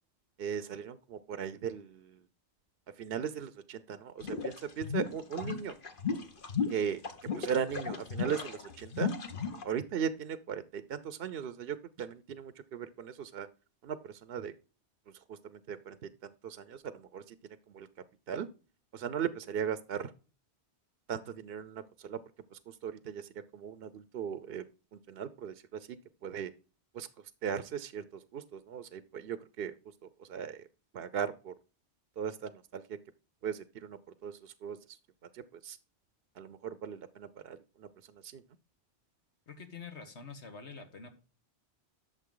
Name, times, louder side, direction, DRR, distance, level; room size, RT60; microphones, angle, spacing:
voice 1, 0.4-2.3 3.0-5.7 6.7-9.1 9.6-13.5 13.8-14.5 15.1-17.4 17.7-17.9 18.3-18.5 18.9-20.1 21.1-22.2 22.5-24.6 24.9-26.0 26.2-26.5 26.9-29.7 30.2-30.7 30.9-31.5 32.2-33.0 33.4-35.0 35.3-35.8 36.4-38.4, right 8 dB, 65° right, 13 dB, 0.8 m, -38 dB
sound 1, 4.2-9.6, left 5 dB, 50° left, 1.3 m, -35 dB
voice 2, 39.5-41.1, left 5 dB, 80° left, 6 dB, 2.0 m, -46 dB
11.5 x 6.9 x 3.8 m, 0.35 s
omnidirectional pair, 1.1 m